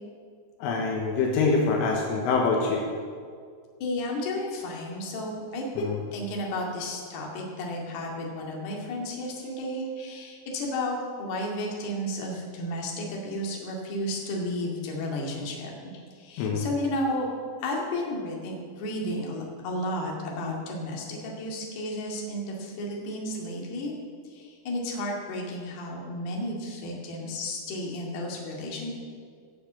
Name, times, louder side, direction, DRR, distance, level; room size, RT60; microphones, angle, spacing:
voice 1, 0.6-2.9 5.8-6.0 16.4-16.7, left 4 dB, 80° left, 0 dB, 3.8 m, -25 dB
voice 2, 3.8-15.7 16.2-17.3 17.6-23.9 24.3-28.9, left 1 dB, 55° left, -1 dB, 4.0 m, -32 dB
18.5 x 7.4 x 7.4 m, 2.1 s
omnidirectional pair, 5.9 m